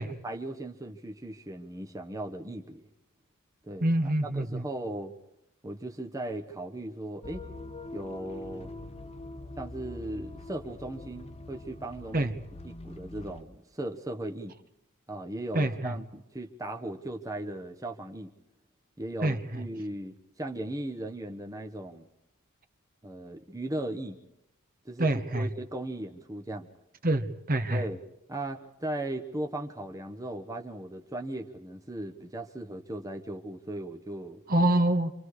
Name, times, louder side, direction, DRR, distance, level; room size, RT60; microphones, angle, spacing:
voice 1, 0.0-2.9 3.7-5.1 5.6-7.4 7.9-8.7 9.6-12.3 12.6-14.6 15.1-18.3 19.0-22.1 23.0-24.2 24.8-25.1 25.3-26.7 27.7-28.0 28.3-34.4, right 1 dB, 15° right, 3 dB, 1.2 m, -37 dB
voice 2, 3.8-4.6 12.1-12.3 15.5-16.0 19.2-19.6 25.0-25.5 27.0-27.8 34.5-35.1, right 1 dB, 40° right, 8 dB, 1.4 m, -26 dB
sound 1, 7.2-13.4, left 2 dB, 30° left, 1.2 m, -44 dB
27.5 x 26.5 x 4.9 m, 0.82 s
head